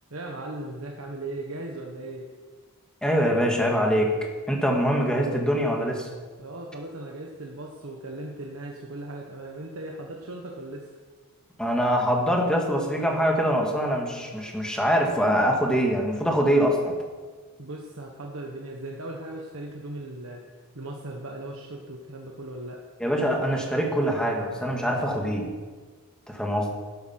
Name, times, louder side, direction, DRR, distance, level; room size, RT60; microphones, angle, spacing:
voice 1, 0.1-2.3 6.4-10.9 17.6-20.4 20.7-22.9, right 2 dB, 65° right, 0 dB, 1.3 m, -38 dB
voice 2, 3.0-4.1 4.5-6.1 11.6-16.9 23.0-25.5 26.3-26.7, equal, 5° left, 0 dB, 2.0 m, -24 dB
12.5 x 11.5 x 6.0 m, 1.4 s
head